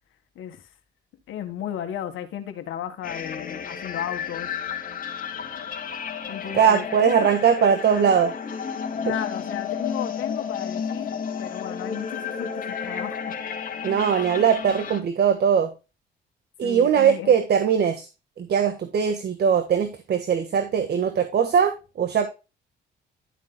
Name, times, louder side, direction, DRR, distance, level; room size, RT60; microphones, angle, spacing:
voice 1, 1.3-4.5 5.3-5.7 6.3-7.3 9.0-13.4 14.4-14.8 16.6-17.3, left 10 dB, 80° left, 1.7 m, -35 dB
sound 1, 3.0-15.0, left 7 dB, 45° left, 2.2 m, -32 dB
voice 2, 6.6-8.3 13.8-15.7 16.6-18.1 18.4-21.7 22.0-22.3, right 7 dB, 55° right, 1.5 m, -20 dB
12.0 x 7.5 x 2.2 m
cardioid pair, 90°, 20 cm